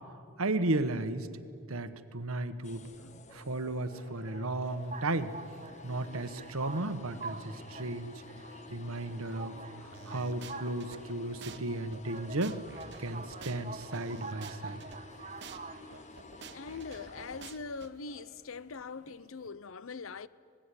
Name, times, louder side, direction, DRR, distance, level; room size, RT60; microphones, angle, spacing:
voice 1, 0.4-1.3 1.7-2.8 3.3-5.3 5.8-8.2 8.7-12.6 13.0-14.8, right 2 dB, 70° right, 1.3 m, -34 dB
sound 1, 2.6-17.5, left 3 dB, 30° left, 1.0 m, -51 dB
sound 2, 4.6-19.5, right 3 dB, 30° right, 1.1 m, -47 dB
sound 3, 9.9-11.0 11.4-11.6 11.9-15.0 15.4-15.6 15.9-17.9, right 6 dB, 50° right, 1.3 m, -49 dB
voice 2, 16.5-20.3, left 4 dB, 65° left, 0.7 m, -42 dB
26.0 x 19.5 x 10.0 m
head